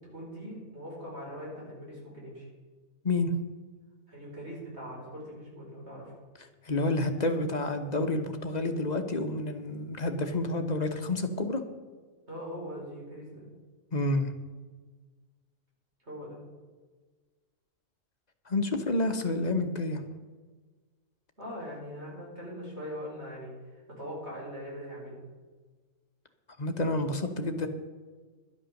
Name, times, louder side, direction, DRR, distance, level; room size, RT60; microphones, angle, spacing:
voice 1, 0.1-2.5 4.1-6.1 12.3-13.4 16.1-16.4 21.4-25.2, equal, 55° right, -5 dB, 5.1 m, -41 dB
voice 2, 6.6-11.6 13.9-14.3 18.5-20.0 26.6-27.7, left 2 dB, 35° left, 6 dB, 1.0 m, -29 dB
12.0 x 8.6 x 6.4 m, 1.4 s
omnidirectional pair, 1.4 m